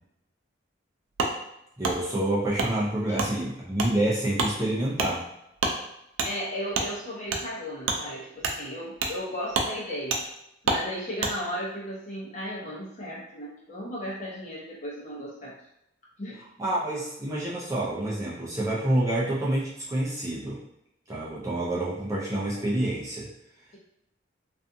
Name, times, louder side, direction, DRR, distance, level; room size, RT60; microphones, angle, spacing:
Wood, 1.2-1.3 1.8-2.0 2.6-2.7 3.2-3.3 3.8-3.9 4.3-4.5 4.9-5.1 5.6-5.8 6.2-6.3 6.7-6.9 7.3-7.4 7.8-8.0 8.4-8.6 9.0-9.2 9.5-9.7 10.1-10.2 10.6-10.8 11.2-11.3, right 3 dB, 90° right, 0.4 m, -27 dB
voice 1, 1.8-5.3 16.6-20.6 21.1-23.3, right 1 dB, 15° right, -6 dB, 0.4 m, -28 dB
voice 2, 6.2-10.2 10.6-15.5 16.2-16.4, equal, 40° left, -6 dB, 0.8 m, -35 dB
2.5 x 2.4 x 2.6 m, 0.82 s
head